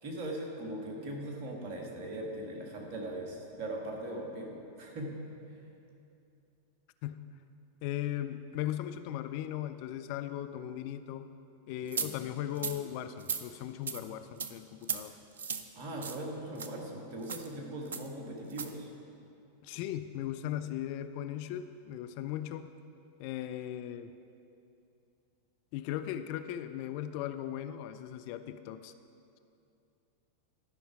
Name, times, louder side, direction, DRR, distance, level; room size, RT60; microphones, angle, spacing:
voice 1, 0.0-5.2 12.0-12.1 15.7-18.9, right 1 dB, 45° right, 0 dB, 1.5 m, -40 dB
voice 2, 7.8-11.3 11.7-15.2 19.6-22.7 23.2-24.1 25.7-28.9, left 11 dB, 45° left, 10 dB, 0.3 m, -38 dB
sound 1, 11.9-12.1 12.6-12.8 13.2-13.4 13.9-14.0 14.4-14.5 14.8-15.0 15.4-15.6 16.0-16.2 16.6-16.7 17.2-17.5 17.9-18.1 18.5-18.7, right 6 dB, 65° right, 0.4 m, -35 dB
12.0 x 5.5 x 4.8 m, 2.6 s
figure-of-eight pair, 90°, 0 cm